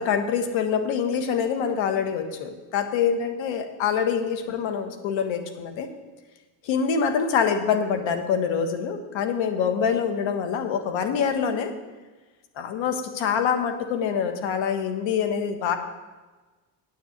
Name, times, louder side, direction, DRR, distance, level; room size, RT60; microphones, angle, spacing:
voice 1, 0.0-5.9 6.6-11.7 12.6-15.8, left 7 dB, 75° left, 6 dB, 1.6 m, -25 dB
9.1 x 7.0 x 8.0 m, 1.2 s
supercardioid pair, 85°, 46 cm